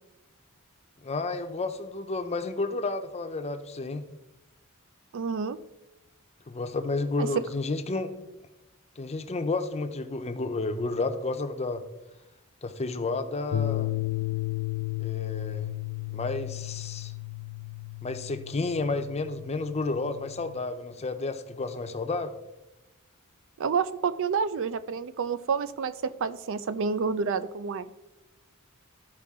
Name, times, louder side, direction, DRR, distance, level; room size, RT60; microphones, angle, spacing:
voice 1, 1.0-4.0 6.5-8.1 9.0-11.8 12.6-13.9 15.0-15.7 16.1-17.1 18.0-22.4, left 3 dB, 30° left, 8 dB, 0.6 m, -31 dB
voice 2, 5.1-5.6 7.2-7.4 23.6-27.9, right 5 dB, 60° right, 14 dB, 0.4 m, -29 dB
sound 1, 13.5-20.6, left 16 dB, 75° left, 0.3 m, -34 dB
12.5 x 4.8 x 3.6 m, 0.99 s
head